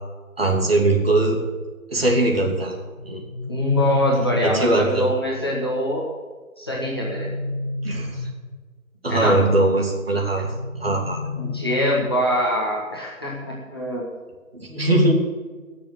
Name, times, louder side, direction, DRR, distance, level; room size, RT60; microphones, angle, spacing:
voice 1, 0.4-1.4 1.9-2.8 3.0-3.2 4.4-5.1 7.8-8.3 9.0-10.5 10.8-11.2 14.5-15.1, right 2 dB, 45° right, 0 dB, 2.8 m, -20 dB
sound 1, 3.0-5.0 6.7-8.7 10.4-12.4, left 2 dB, 15° right, 1.0 m, -30 dB
voice 2, 3.5-6.1 6.6-7.3 9.1-9.4 11.4-14.1, left 1 dB, 20° left, -4 dB, 1.3 m, -24 dB
16.5 x 6.9 x 6.9 m, 1.4 s
figure-of-eight pair, 160°, 41 cm